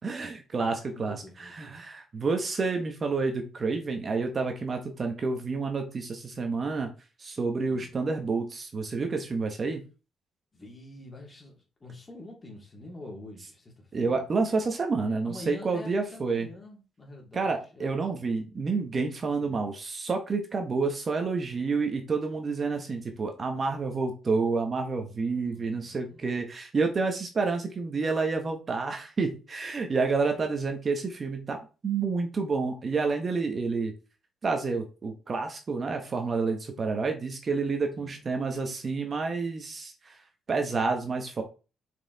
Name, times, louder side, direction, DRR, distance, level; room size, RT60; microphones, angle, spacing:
voice 1, 0.0-6.9 7.2-9.8 13.9-16.5 17.3-33.9 34.4-40.2 40.5-41.4, right 4 dB, 40° right, 4 dB, 1.3 m, -29 dB
voice 2, 0.9-1.7 7.7-7.9 10.5-14.2 15.2-18.0 19.4-19.6 25.4-26.4 30.3-30.5 37.9-38.2, left 2 dB, 25° left, -1 dB, 3.1 m, -46 dB
5.8 x 4.9 x 4.1 m, 0.33 s
cardioid pair, 90°, 0 cm